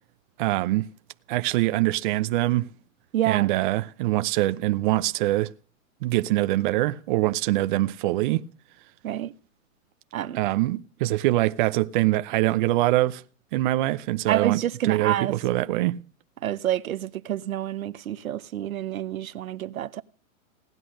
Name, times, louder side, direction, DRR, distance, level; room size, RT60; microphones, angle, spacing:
voice 1, 0.4-0.9 1.3-2.7 3.3-5.5 6.0-8.4 10.3-13.2 13.5-14.6 14.8-16.0, right 17 dB, 40° right, 0.7 m, -24 dB
voice 2, 3.1-3.5 9.0-9.3 10.1-10.4 14.3-15.3 16.4-20.0, right 12 dB, 80° right, 1.1 m, -28 dB
18.0 x 11.0 x 6.4 m
hypercardioid pair, 145°, 41 cm